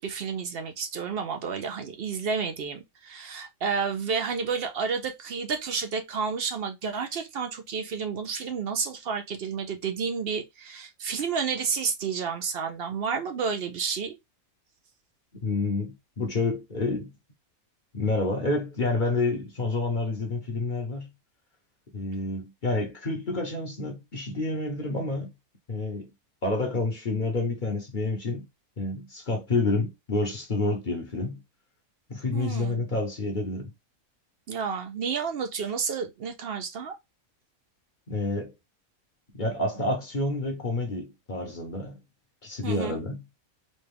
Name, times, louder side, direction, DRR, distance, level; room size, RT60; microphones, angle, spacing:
voice 1, 0.0-14.2 32.3-32.7 34.5-36.9 42.6-43.0, right 5 dB, 55° right, 0.7 m, -31 dB
voice 2, 15.4-17.1 17.9-21.1 21.9-25.3 25.7-26.1 26.4-28.5 28.8-31.4 32.1-33.7 38.1-38.5 39.3-42.0 42.4-43.3, left 2 dB, 40° left, 0.9 m, -29 dB
4.2 x 2.3 x 3.4 m
omnidirectional pair, 1.5 m